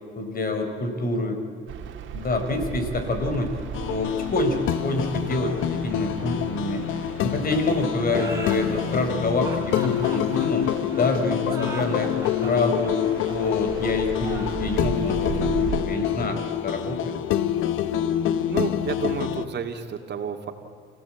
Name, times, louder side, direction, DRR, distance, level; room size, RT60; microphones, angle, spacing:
voice 1, 0.1-1.4 2.1-3.5 3.9-6.9 7.2-10.7 11.0-17.1, left 2 dB, 45° left, 6 dB, 4.4 m, -27 dB
sound 1, 1.7-15.8, right 8 dB, 75° right, 2.2 m, -37 dB
sound 2, 3.7-19.5, left 10 dB, 90° left, 1.0 m, -26 dB
sound 3, 8.0-17.3, right 2 dB, 15° right, 5.7 m, -39 dB
voice 2, 18.5-20.5, right 7 dB, 60° right, 4 dB, 2.7 m, -30 dB
29.5 x 17.0 x 8.8 m, 2.3 s
cardioid pair, 90°, 20 cm